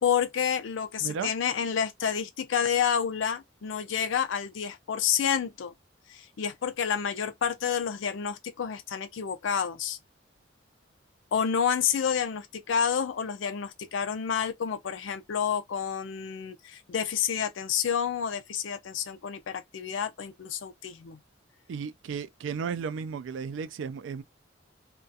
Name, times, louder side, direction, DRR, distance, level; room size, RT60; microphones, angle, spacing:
voice 1, 0.0-5.7 6.1-10.0 11.3-21.2, left 7 dB, 85° left, 0.4 m, -29 dB
voice 2, 1.0-1.3 21.7-24.2, right 6 dB, 75° right, 0.3 m, -34 dB
2.3 x 2.2 x 2.6 m
head